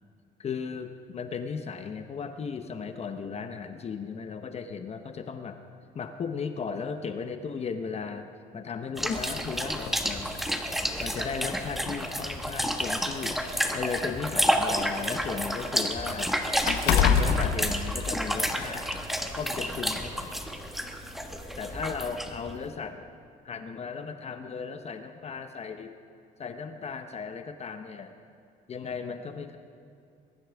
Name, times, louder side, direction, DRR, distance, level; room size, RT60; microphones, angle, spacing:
voice 1, 0.4-5.6 5.9-8.3 8.5-10.4 11.0-13.4 13.7-16.3 16.8-18.9 19.4-20.4 21.6-23.1 23.4-25.9 26.4-28.1 28.7-29.6, left 5 dB, 40° left, 8 dB, 0.8 m, -36 dB
sound 1, 9.0-22.5, equal, ahead, 1.1 m, -30 dB
sound 2, 9.9-10.0 11.1-11.2 11.6-11.8 12.7-14.7 15.1-18.5 18.9-19.0, left 7 dB, 90° left, 1.1 m, -27 dB
21.5 x 13.0 x 3.5 m, 2.5 s
cardioid pair, 110°, 17 cm